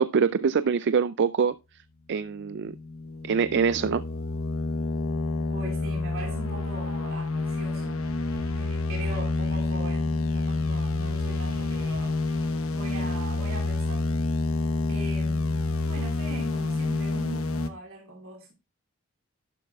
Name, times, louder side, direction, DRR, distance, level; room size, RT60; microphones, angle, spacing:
voice 1, 0.0-1.5 2.1-2.7 3.2-4.0, right 6 dB, 55° right, 0.4 m, -24 dB
sound 1, 2.5-17.7, left 3 dB, 80° left, 1.1 m, -28 dB
voice 2, 5.5-8.1 8.5-12.2 12.7-14.2 14.9-18.5, right 2 dB, 75° right, 2.8 m, -41 dB
sound 2, 8.0-8.7 9.0-9.7 10.3-12.8, equal, 20° right, 1.9 m, -43 dB
12.0 x 9.9 x 2.3 m
head